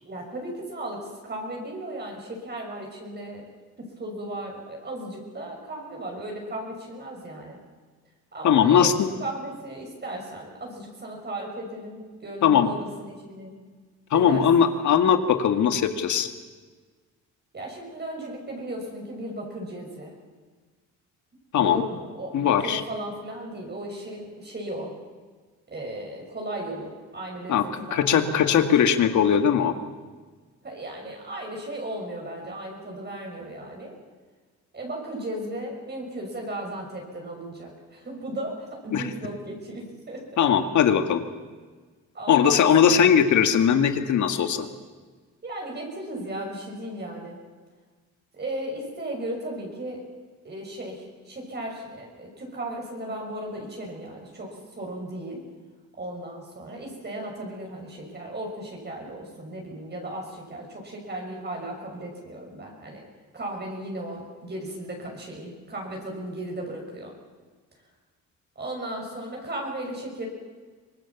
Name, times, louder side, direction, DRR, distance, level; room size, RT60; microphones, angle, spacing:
voice 1, 0.0-3.4 3.8-7.6 8.3-8.9 9.2-13.5 14.1-14.7 17.5-20.1 21.6-24.9 25.7-28.7 30.6-34.0 34.7-40.5 42.1-43.0 45.4-47.4 48.4-50.0 50.4-55.4 56.0-63.0 63.3-67.1 68.5-70.3, right 1 dB, 35° right, 0 dB, 6.3 m, -36 dB
voice 2, 8.4-9.1 12.4-12.7 14.1-16.3 21.5-21.8 22.3-22.8 27.5-27.6 27.9-29.7 38.9-39.1 40.4-41.2 42.3-44.7, left 8 dB, 70° left, 8 dB, 2.0 m, -20 dB
24.5 x 19.5 x 7.3 m, 1.4 s
cardioid pair, 90°, 30 cm